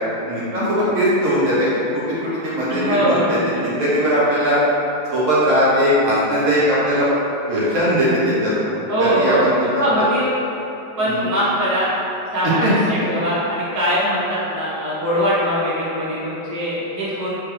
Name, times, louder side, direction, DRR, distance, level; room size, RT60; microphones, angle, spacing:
voice 1, 0.3-4.6 5.1-7.1 7.5-8.5 9.0-9.5 11.0-11.3 12.6-12.9, equal, 55° right, -9 dB, 1.0 m, -19 dB
voice 2, 2.7-3.4 8.9-9.5 9.8-10.3 11.0-11.9 12.3-17.4, equal, 25° right, -10 dB, 0.3 m, -21 dB
3.5 x 3.0 x 3.3 m, 3.0 s
omnidirectional pair, 1.9 m